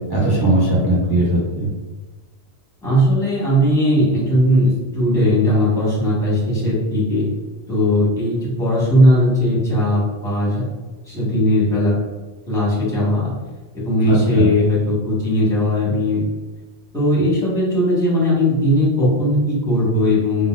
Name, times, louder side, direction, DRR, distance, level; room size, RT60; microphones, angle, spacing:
voice 1, 0.1-1.7 14.0-14.5, right 1 dB, 25° right, -6 dB, 0.6 m, -18 dB
voice 2, 2.8-7.3 7.7-10.6 11.1-12.0 12.5-13.3 13.7-16.2 16.9-20.5, left 1 dB, 5° left, -8 dB, 1.1 m, -18 dB
3.8 x 2.2 x 2.3 m, 1.3 s
omnidirectional pair, 1.1 m